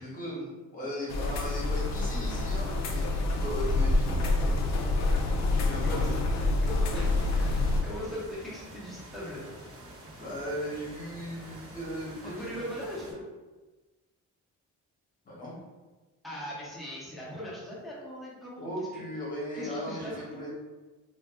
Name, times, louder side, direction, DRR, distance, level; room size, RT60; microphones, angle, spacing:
voice 1, 0.0-4.6 5.6-6.1 10.2-12.8 15.2-15.6 18.6-20.5, equal, 25° left, -5 dB, 1.0 m, -37 dB
sound 1, 1.1-7.8, left 2 dB, 60° left, 0.5 m, -27 dB
voice 2, 5.4-6.0 6.4-9.4 12.2-13.1 16.2-19.0 19.5-20.5, equal, ahead, -7 dB, 0.7 m, -40 dB
sound 2, 6.9-13.1, right 1 dB, 45° right, 0.7 m, -48 dB
2.6 x 2.4 x 3.5 m, 1.2 s
cardioid pair, 170°, 32 cm